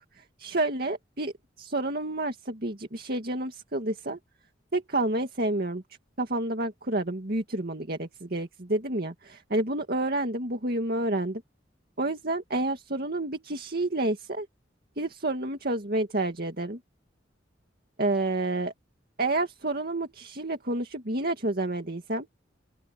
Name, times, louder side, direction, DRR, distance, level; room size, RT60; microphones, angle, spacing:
voice 1, 0.4-4.2 4.7-5.8 6.2-11.4 12.0-14.5 15.0-16.8 18.0-18.7 19.2-22.3, right 2 dB, 55° right, 2.2 m, -29 dB
open air
head